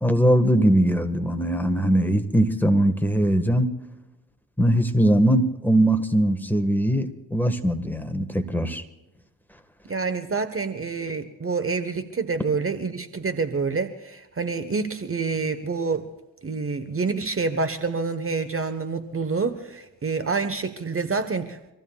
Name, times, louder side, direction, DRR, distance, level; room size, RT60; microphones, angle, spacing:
voice 1, 0.0-3.7 4.6-8.8, right 1 dB, 5° left, 6 dB, 1.7 m, -21 dB
voice 2, 9.8-16.0 16.4-21.7, right 4 dB, 30° right, 9 dB, 1.3 m, -27 dB
25.5 x 15.0 x 2.4 m, 1.0 s
hypercardioid pair, 50°, 45 cm